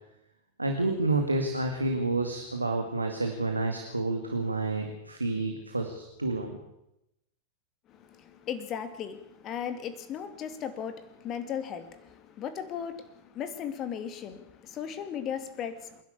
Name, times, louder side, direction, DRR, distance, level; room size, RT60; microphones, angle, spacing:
voice 1, 0.6-6.6, right 2 dB, 80° right, 2.2 m, -29 dB
voice 2, 7.9-16.0, left 8 dB, 35° left, 2.3 m, -37 dB
27.5 x 11.5 x 8.3 m
figure-of-eight pair, 90°, 0 cm